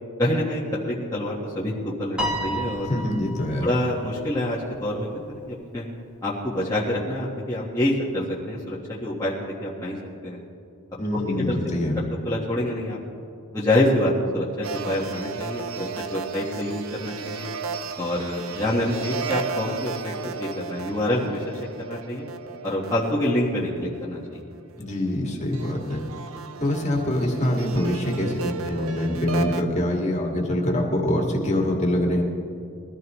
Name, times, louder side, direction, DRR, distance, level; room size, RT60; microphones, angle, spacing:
voice 1, 0.2-3.0 3.6-5.9 6.2-10.0 10.2-10.4 11.1-11.6 12.2-13.0 13.5-17.5 18.0-21.5 21.9-22.2 22.6-24.4, left 1 dB, 15° left, -7 dB, 1.5 m, -26 dB
Piano, 2.2-4.7, equal, 5° right, 2.0 m, -31 dB
voice 2, 2.8-3.7 11.0-12.0 24.8-26.0 26.6-32.2, left 1 dB, 30° left, -1 dB, 2.0 m, -24 dB
sound 1, 14.6-24.2 25.0-29.6, right 5 dB, 75° right, 0.7 m, -34 dB
22.0 x 14.5 x 3.1 m, 2.6 s
head